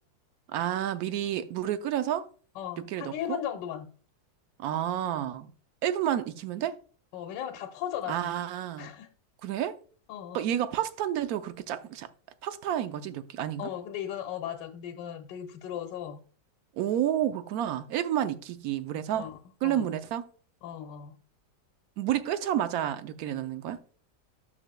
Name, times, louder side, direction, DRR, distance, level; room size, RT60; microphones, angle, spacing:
voice 1, 0.5-2.3 2.9-3.4 4.6-5.5 5.8-6.8 8.1-8.9 9.4-9.8 10.3-12.1 12.4-13.7 16.8-19.3 19.6-20.2 22.0-23.8, right 11 dB, 70° right, 1.0 m, -30 dB
voice 2, 2.6-3.9 7.1-8.3 8.8-9.1 10.1-10.4 13.6-16.2 19.1-20.0 20.6-21.2, left 10 dB, 85° left, 1.3 m, -37 dB
9.7 x 7.0 x 2.2 m
omnidirectional pair, 1.9 m